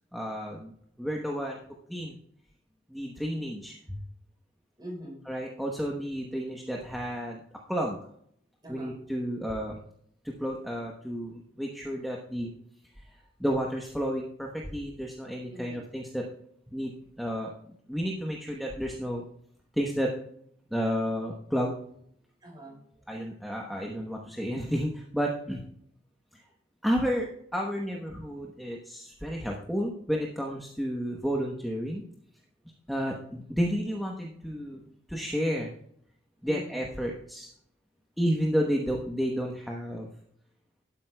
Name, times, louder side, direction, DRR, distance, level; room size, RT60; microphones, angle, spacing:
voice 1, 0.1-1.6 1.9-2.2 2.9-4.0 5.3-7.4 7.7-8.0 8.7-9.8 10.2-12.5 13.0-13.1 13.4-16.3 16.7-16.9 17.2-17.5 17.9-19.2 19.7-20.1 20.7-21.7 23.1-25.6 26.3-26.4 26.8-32.0 32.9-35.7 36.4-37.5 38.2-40.1, equal, ahead, -1 dB, 1.0 m, -31 dB
voice 2, 4.8-5.3 8.6-9.0 15.5-15.9 16.7-17.1 22.4-23.1 36.4-36.9, equal, 25° right, -1 dB, 4.4 m, -44 dB
12.5 x 10.0 x 2.3 m, 0.68 s
head